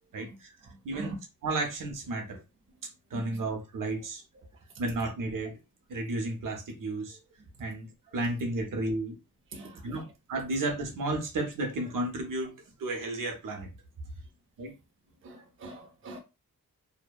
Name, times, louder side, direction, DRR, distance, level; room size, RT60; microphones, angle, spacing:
voice 1, 0.1-0.5 0.8-1.1 1.4-2.4 3.1-4.2 4.8-5.6 5.9-7.2 7.6-9.1 9.6-10.0 10.3-12.5 12.8-13.7 14.6-14.7, right 2 dB, 70° right, 0.8 m, -32 dB
voice 2, 9.5-10.0 15.2-16.2, right 2 dB, 40° right, 0.5 m, -42 dB
2.7 x 2.1 x 2.3 m
wide cardioid pair, 155°, 34 cm